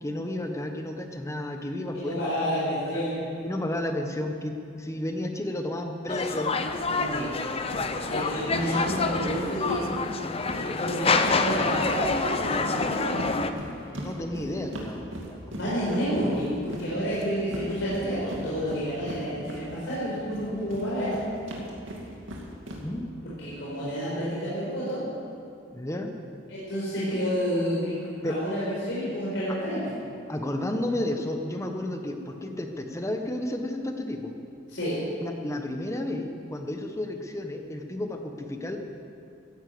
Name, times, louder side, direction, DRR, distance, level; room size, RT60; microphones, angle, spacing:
voice 1, 0.0-2.1 2.9-3.0 3.4-6.5 13.9-15.5 22.8-23.1 25.7-26.1 28.2-28.3 29.5-29.6 30.3-34.3 35.2-38.8, left 1 dB, 15° left, 4 dB, 1.1 m, -32 dB
voice 2, 1.9-3.3 6.8-10.0 10.5-13.2 13.9-14.1 15.5-21.1 23.2-25.0 26.5-29.9 34.7-35.0, equal, 70° left, -9 dB, 4.5 m, -30 dB
sound 1, 6.1-13.5, left 4 dB, 30° left, 0.7 m, -27 dB
sound 2, 7.7-8.2 8.5-11.4 11.6-20.0 20.3-22.8, equal, 85° right, 2.5 m, -38 dB
15.5 x 10.5 x 7.8 m, 2.5 s
head